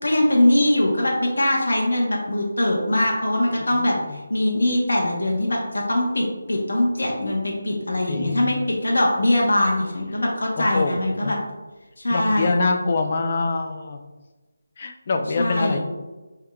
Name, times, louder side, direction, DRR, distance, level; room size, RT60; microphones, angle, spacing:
voice 1, 0.0-11.4 12.0-12.6 15.4-15.8, left 1 dB, 85° left, -2 dB, 1.0 m, -22 dB
voice 2, 3.6-4.2 8.1-8.6 10.6-11.3 12.1-14.0 14.8-15.8, left 3 dB, 35° left, 5 dB, 0.4 m, -25 dB
5.9 x 3.6 x 2.3 m, 1.2 s
figure-of-eight pair, 170°, 0 cm